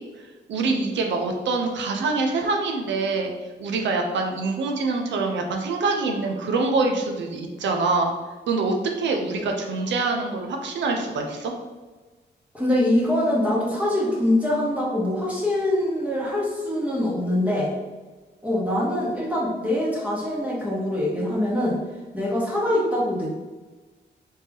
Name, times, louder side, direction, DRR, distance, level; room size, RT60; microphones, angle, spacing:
voice 1, 0.5-3.3 3.6-8.1 8.5-11.5, right 3 dB, 80° right, 3 dB, 0.6 m, -25 dB
voice 2, 12.5-17.7 18.4-21.8 22.1-23.4, left 1 dB, 5° right, -6 dB, 1.0 m, -24 dB
3.4 x 2.8 x 3.5 m, 1.3 s
cardioid pair, 90°, 18 cm